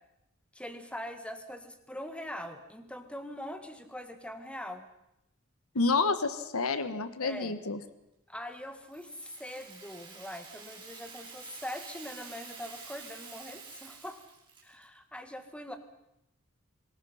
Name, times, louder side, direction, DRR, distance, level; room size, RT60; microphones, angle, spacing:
voice 1, 0.5-4.9 7.2-7.6 8.3-14.2 14.6-15.8, left 1 dB, 5° left, 7 dB, 1.9 m, -42 dB
voice 2, 5.7-7.8, left 3 dB, 80° left, 11 dB, 1.3 m, -29 dB
Rattle (instrument), 8.9-14.9, right 5 dB, 20° right, 5.1 m, -48 dB
27.0 x 19.5 x 5.8 m, 0.86 s
head